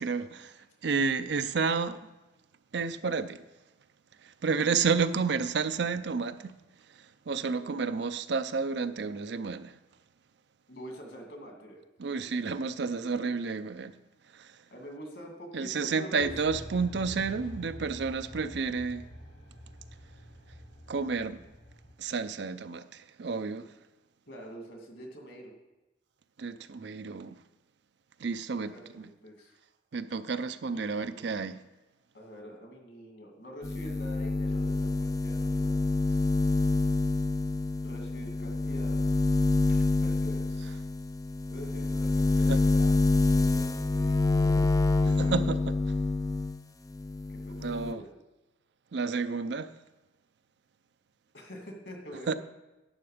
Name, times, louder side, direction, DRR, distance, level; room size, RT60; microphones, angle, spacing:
voice 1, 0.0-2.0 2.7-3.4 4.2-6.6 6.9-9.8 12.0-14.0 14.3-14.6 15.5-19.1 20.9-21.4 22.0-23.7 26.4-27.4 28.2-29.1 29.9-31.6 42.5-42.6 45.2-45.6 47.6-48.0 48.9-49.7 52.3-52.4, right 5 dB, 60° right, 0.5 m, -31 dB
voice 2, 10.7-11.8 12.1-13.3 14.7-16.3 17.3-17.4 24.3-25.5 28.6-29.6 30.7-30.8 31.1-31.2 32.1-35.8 37.8-39.1 39.7-40.7 41.5-43.0 43.3-45.3 47.3-48.1 51.3-52.4, equal, 65° left, 2.4 m, -46 dB
sound 1, 16.2-21.9, equal, 85° left, 2.5 m, -46 dB
sound 2, 33.6-46.6 46.9-47.9, left 2 dB, 20° left, 0.3 m, -27 dB
11.5 x 6.9 x 5.0 m
head